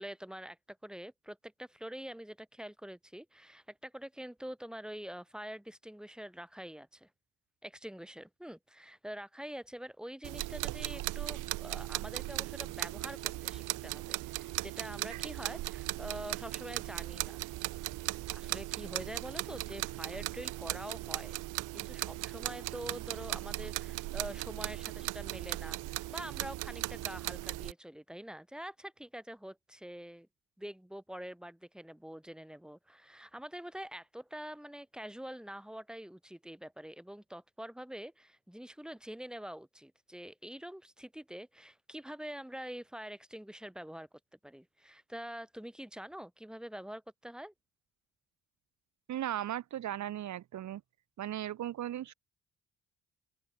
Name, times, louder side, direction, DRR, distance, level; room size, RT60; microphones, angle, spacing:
voice 1, 0.0-7.1 7.6-17.4 17.8-17.9 18.2-21.4 21.7-30.3 30.6-44.1 44.4-47.5, equal, 5° right, 6.7 m, -45 dB
sound 1, 10.2-27.7, right 18 dB, 85° right, 0.7 m, -38 dB
voice 2, 49.1-50.8 51.2-52.1, right 12 dB, 70° right, 2.0 m, -37 dB
open air
cardioid pair, 90°, 30 cm